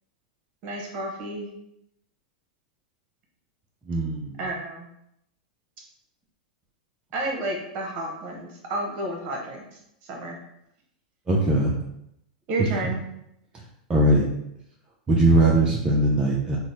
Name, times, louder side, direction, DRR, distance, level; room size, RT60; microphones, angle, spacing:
voice 1, 0.6-1.5 4.4-4.9 7.1-9.6 10.1-10.4 12.5-13.0, right 2 dB, 45° right, 0 dB, 1.1 m, -31 dB
voice 2, 3.9-4.4 11.3-11.8 12.6-12.7 13.9-14.3 15.1-16.6, right 1 dB, 20° right, -3 dB, 0.5 m, -20 dB
2.9 x 2.2 x 4.1 m, 0.79 s
hypercardioid pair, 115°, 4 cm